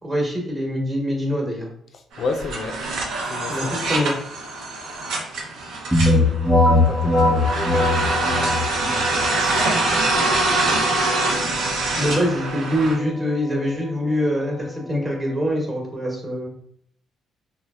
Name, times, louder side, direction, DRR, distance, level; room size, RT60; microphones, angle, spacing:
voice 1, 0.0-1.7 3.5-4.1 12.0-16.5, equal, 25° right, 0 dB, 1.0 m, -24 dB
sound 1, 2.1-13.0, right 2 dB, 80° right, 0.6 m, -24 dB
voice 2, 2.2-2.8 3.3-3.8 6.1-6.4 6.9-7.9 8.4-8.6 8.8-10.0, left 4 dB, 60° left, 5 dB, 0.3 m, -32 dB
sound 2, 5.9-15.5, left 2 dB, ahead, 0.8 m, -23 dB
3.2 x 2.3 x 2.3 m, 0.67 s
cardioid pair, 90°, 0 cm